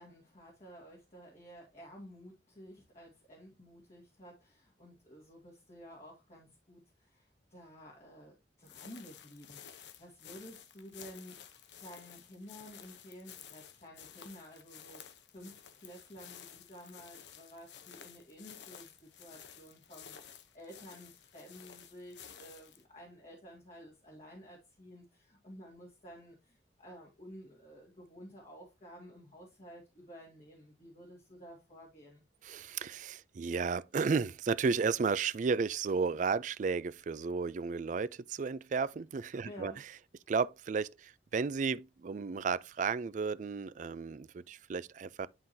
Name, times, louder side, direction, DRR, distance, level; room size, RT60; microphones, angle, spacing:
voice 1, 0.0-11.4 11.7-32.2 39.4-39.8, equal, 40° left, 2.0 m, -52 dB
sound 1, 8.6-22.8, left 8 dB, 80° left, 0.8 m, -53 dB
voice 2, 32.4-39.7 40.3-45.3, right 5 dB, 45° right, 0.3 m, -33 dB
10.5 x 3.9 x 2.7 m
head